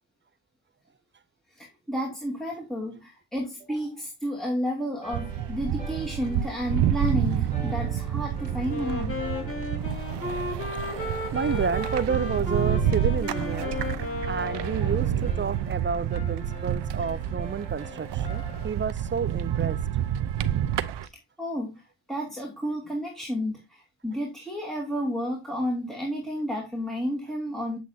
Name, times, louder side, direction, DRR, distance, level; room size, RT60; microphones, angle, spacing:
voice 1, 1.6-9.4 21.4-21.7 22.1-27.8, equal, ahead, 2.5 m, -31 dB
sound 1, 5.0-18.7, left 2 dB, 15° left, 3.8 m, -46 dB
sound 2, 5.1-21.1, right 10 dB, 75° right, 0.8 m, -29 dB
Wind instrument woodwind instrument, 8.7-15.4, left 3 dB, 30° left, 3.6 m, -34 dB
voice 2, 11.3-13.8 14.3-19.8, right 6 dB, 30° right, 0.4 m, -30 dB
8.2 x 7.5 x 2.7 m
cardioid pair, 85°, 42 cm